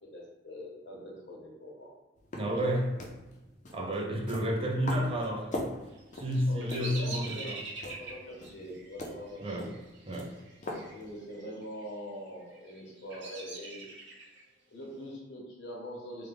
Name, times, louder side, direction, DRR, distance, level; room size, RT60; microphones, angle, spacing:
voice 1, 0.0-1.9 2.5-2.7 3.7-3.9 6.5-7.6 7.8-9.7 10.6-13.9 14.7-16.3, equal, 80° left, -2 dB, 0.9 m, -43 dB
sound 1, 2.2-11.4, left 1 dB, 45° left, 0.5 m, -43 dB
voice 2, 2.4-3.0 3.7-5.7 6.2-7.6 9.4-9.7 10.1-10.4, equal, 30° right, -1 dB, 0.6 m, -31 dB
Bird vocalization bird call bird song, 5.9-11.0 11.2-11.8 12.4-14.4, right 3 dB, 90° right, 0.9 m, -44 dB
3.3 x 2.2 x 3.4 m, 1.1 s
head